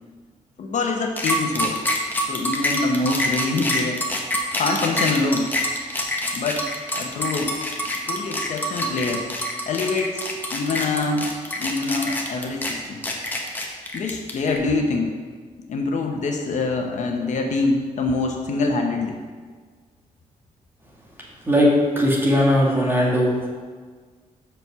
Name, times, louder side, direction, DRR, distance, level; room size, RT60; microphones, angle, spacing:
voice 1, 0.6-1.8 2.2-4.0 4.5-5.5 6.3-6.7 7.0-7.5 7.8-9.2 9.7-11.3 11.6-13.0 13.9-15.1 15.7-19.2, left 3 dB, 60° left, 2 dB, 0.9 m, -25 dB
sound 1, 1.2-14.6, equal, 15° left, 0.9 m, -26 dB
voice 2, 21.5-23.5, equal, 15° right, -3 dB, 1.7 m, -18 dB
6.1 x 5.1 x 6.8 m, 1.5 s
wide cardioid pair, 155°, 14 cm